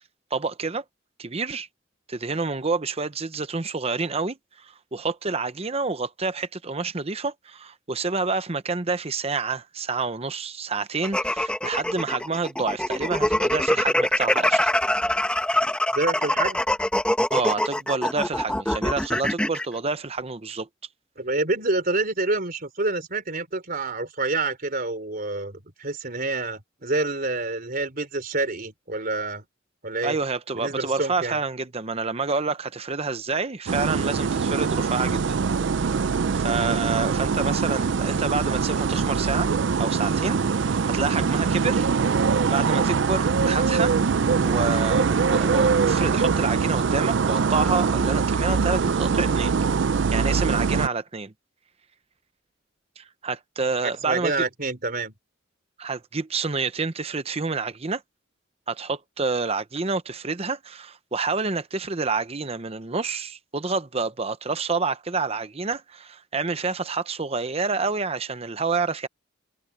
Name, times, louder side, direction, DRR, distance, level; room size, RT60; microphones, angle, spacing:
voice 1, 0.3-0.8 1.2-1.7 2.1-14.7 17.3-20.7 30.0-35.4 35.8-36.1 36.3-39.5 39.8-41.9 42.5-44.0 44.4-49.7 50.1-51.3 53.0-54.5 55.8-58.0 58.7-69.1, right 4 dB, 30° right, 0.8 m, -28 dB
sound 1, 11.0-19.7, left 1 dB, 5° left, 1.3 m, -24 dB
voice 2, 15.9-16.6 21.2-29.5 29.8-30.2 30.5-31.4 53.8-55.1, right 2 dB, 50° right, 3.8 m, -27 dB
sound 2, 33.7-50.9, right 5 dB, 65° right, 0.4 m, -23 dB
head